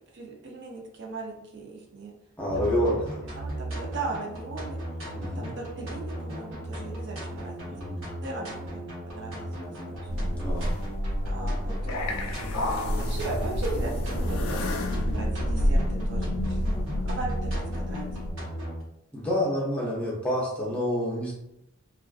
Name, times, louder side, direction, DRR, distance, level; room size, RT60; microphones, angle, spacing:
voice 1, 0.1-2.1 2.5-2.8 3.3-4.8 5.4-7.6 8.2-10.1 11.3-12.1 12.6-14.6 15.0-16.7 17.0-18.0, right 3 dB, 55° right, -1 dB, 0.5 m, -38 dB
voice 2, 2.4-3.2 5.1-5.5 7.7-8.0 10.4-10.7 19.1-21.3, equal, 5° left, -5 dB, 0.5 m, -28 dB
sound 1, 2.5-18.8, right 1 dB, 70° right, 1.0 m, -36 dB
sound 2, 10.1-18.3, left 1 dB, 90° left, 0.4 m, -29 dB
2.4 x 2.3 x 2.3 m, 0.81 s
head